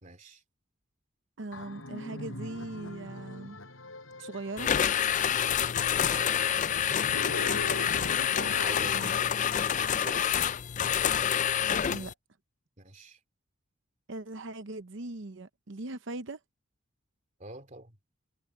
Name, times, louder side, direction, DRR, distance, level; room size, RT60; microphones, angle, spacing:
voice 1, 0.0-0.4 5.9-6.4 8.4-9.1 9.8-10.4 12.8-13.2 17.4-17.9, right 2 dB, 40° right, 2.7 m, -45 dB
voice 2, 1.4-3.6 4.2-4.7 8.8-9.2 11.9-12.1 14.1-16.4, right 2 dB, 65° right, 0.8 m, -40 dB
sound 1, 1.5-10.2, left 2 dB, 85° left, 7.1 m, -41 dB
sound 2, 4.3-4.4 4.7-4.8 7.0-9.1, left 6 dB, 60° left, 3.7 m, -50 dB
sound 3, 4.6-12.1, left 9 dB, 40° left, 0.4 m, -27 dB
head